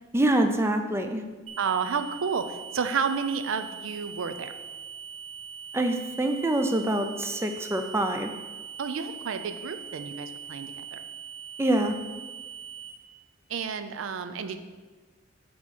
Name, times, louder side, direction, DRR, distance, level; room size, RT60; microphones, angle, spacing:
voice 1, 0.1-1.2 5.7-8.3 11.6-11.9, right 1 dB, 15° right, 6 dB, 0.4 m, -25 dB
sound 1, 1.5-12.9, right 8 dB, 30° right, 0.8 m, -42 dB
voice 2, 1.6-4.5 8.8-11.0 13.5-14.7, right 6 dB, 70° right, 9 dB, 0.4 m, -31 dB
8.2 x 3.0 x 4.2 m, 1.3 s
head